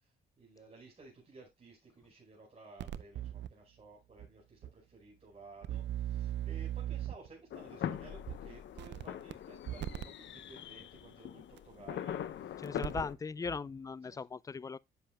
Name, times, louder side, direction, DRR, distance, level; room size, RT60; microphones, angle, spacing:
voice 1, 0.4-12.6 14.0-14.3, right 3 dB, 30° right, 5.0 m, -55 dB
sound 1, 2.8-3.5 4.2-4.3 4.6-4.7 5.6-7.3 8.3-8.4 8.8-9.3 9.7-10.1 11.6-11.7 12.7-13.1 13.4-13.6, right 12 dB, 65° right, 0.6 m, -38 dB
sound 2, 7.5-13.1, left 10 dB, 65° left, 0.8 m, -42 dB
voice 2, 12.6-14.8, left 5 dB, 15° left, 0.3 m, -39 dB
10.0 x 7.4 x 2.2 m
cardioid pair, 90°, 20 cm